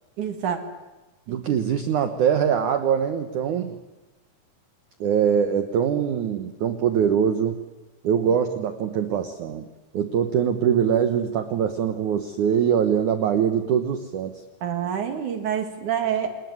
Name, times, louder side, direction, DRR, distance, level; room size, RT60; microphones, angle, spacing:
voice 1, 0.2-0.6 1.3-1.4 14.6-16.3, right 8 dB, 55° right, 6 dB, 2.7 m, -27 dB
voice 2, 1.3-3.8 5.0-7.6 8.0-9.7 9.9-14.4, right 8 dB, 80° right, 8 dB, 1.8 m, -23 dB
27.0 x 20.0 x 9.5 m, 1.1 s
omnidirectional pair, 5.3 m